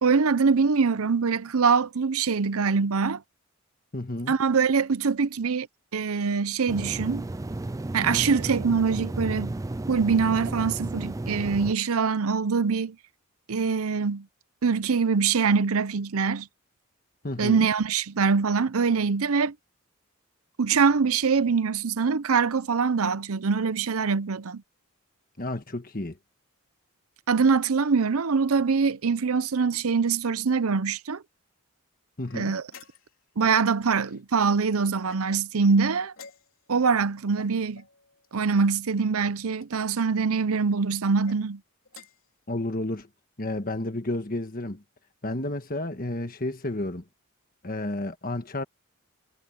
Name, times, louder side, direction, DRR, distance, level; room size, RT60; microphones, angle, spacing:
voice 1, 0.0-3.2 4.3-5.7 5.9-7.3 7.9-9.6 9.9-13.0 13.5-14.3 14.6-16.5 17.4-19.5 20.6-24.6 27.3-31.2 32.3-32.6 33.4-36.1 36.7-37.8 38.3-41.6, right 5 dB, 75° right, 0.7 m, -24 dB
voice 2, 3.9-4.3 17.2-17.7 25.4-26.2 32.2-32.5 37.5-37.6 42.5-43.1 43.4-44.8 45.2-47.0 47.6-48.6, left 1 dB, 40° left, 1.5 m, -31 dB
sound 1, 6.7-11.7, right 2 dB, 15° right, 0.3 m, -33 dB
sound 2, 32.2-33.3 35.0-35.6 36.1-36.8 37.7-38.7 39.6-40.1 41.1-41.4 41.9-42.3, left 5 dB, 60° left, 4.2 m, -51 dB
head